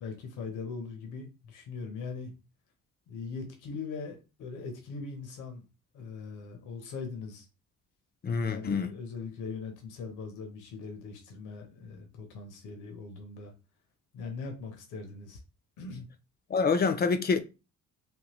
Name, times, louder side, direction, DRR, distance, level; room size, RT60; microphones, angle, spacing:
voice 1, 0.0-2.3 3.1-5.6 5.9-7.5 8.4-13.5 14.1-15.4 15.8-16.1, left 4 dB, 85° left, 0.9 m, -40 dB
voice 2, 8.2-8.9 16.5-17.4, left 5 dB, 35° left, 0.4 m, -26 dB
3.6 x 2.2 x 2.9 m
cardioid pair, 90°, 30 cm